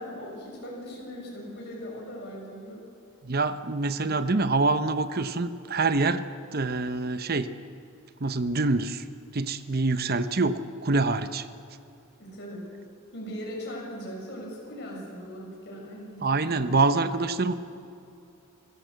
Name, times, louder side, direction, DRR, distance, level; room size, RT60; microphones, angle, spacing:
voice 1, 0.0-2.8 12.2-12.7 13.1-16.7 17.0-17.1, equal, 50° left, -2 dB, 7.1 m, -39 dB
voice 2, 3.2-6.2 6.5-7.5 8.2-9.0 9.3-11.5 16.2-17.5, right 3 dB, 45° right, 11 dB, 0.8 m, -25 dB
25.5 x 16.0 x 8.1 m, 2.6 s
head